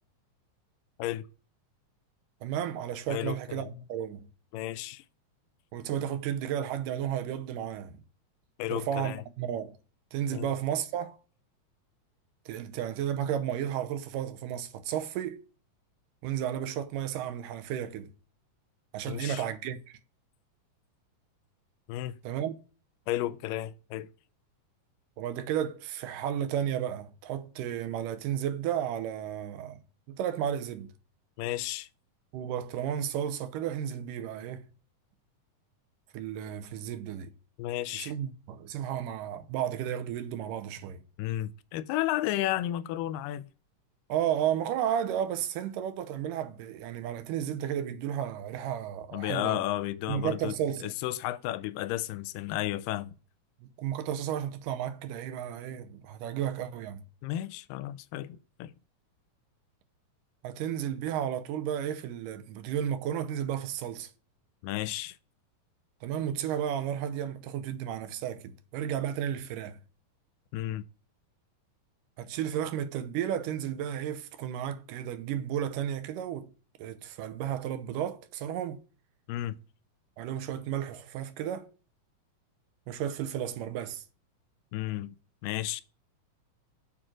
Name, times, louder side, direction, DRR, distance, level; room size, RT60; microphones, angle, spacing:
voice 1, 2.4-4.3 5.7-8.0 8.7-9.8 10.1-11.2 12.5-15.4 16.2-18.1 18.9-19.8 22.2-22.5 25.2-29.8 30.1-30.9 32.3-34.7 36.1-37.3 37.9-41.0 44.1-49.6 50.1-50.9 53.6-57.0 60.4-64.1 66.0-69.8 72.2-76.5 76.8-78.8 80.2-81.7 82.9-84.0, right 10 dB, 90° right, 2.3 m, -33 dB
voice 2, 3.1-3.7 4.5-5.0 8.6-9.2 10.3-10.5 19.1-19.4 21.9-22.2 23.1-24.1 31.4-31.9 37.6-38.1 41.2-43.5 49.1-50.5 50.8-53.1 57.2-58.7 64.6-65.2 70.5-70.9 79.3-79.6 84.7-85.1 85.4-85.8, left 14 dB, 90° left, 2.2 m, -33 dB
7.2 x 3.8 x 6.1 m
omnidirectional pair, 3.7 m